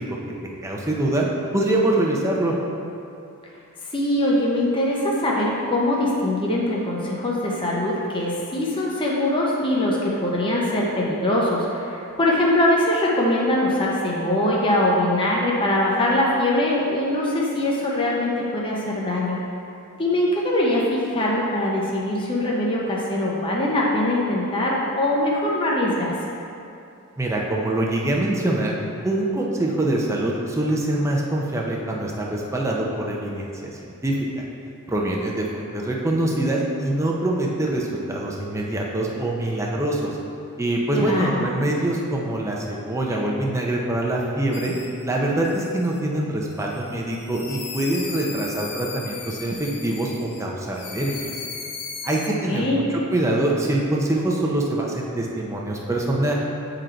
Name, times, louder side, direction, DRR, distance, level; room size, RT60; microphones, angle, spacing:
voice 1, 0.6-1.2 1.5-2.5 27.2-28.8 29.0-34.4 34.9-40.2 40.6-44.7 45.0-51.3 52.0-56.3, right 1 dB, 15° right, -2 dB, 0.7 m, -24 dB
voice 2, 3.9-19.4 20.0-26.1 40.9-41.4 52.5-52.9, left 1 dB, 25° left, -4 dB, 0.7 m, -22 dB
sound 1, 44.5-45.0 45.4-46.0 46.5-50.5 50.7-52.3, left 5 dB, 90° left, 0.8 m, -37 dB
7.8 x 3.9 x 4.5 m, 2.6 s
head